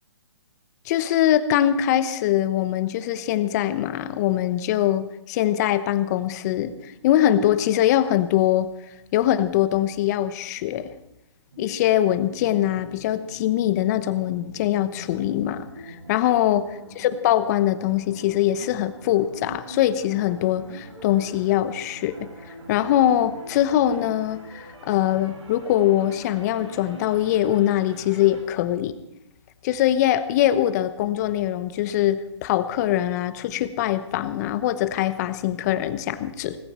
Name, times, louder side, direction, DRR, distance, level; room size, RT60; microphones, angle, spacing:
voice 1, 0.9-8.7 9.1-10.9 11.6-16.6 17.0-22.3 22.7-29.0 29.6-36.6, left 12 dB, 35° left, 13 dB, 1.0 m, -22 dB
sound 1, 11.5-28.4, right 2 dB, 85° right, 6.8 m, -43 dB
18.5 x 16.5 x 4.4 m, 0.85 s
hypercardioid pair, 140°, 15 cm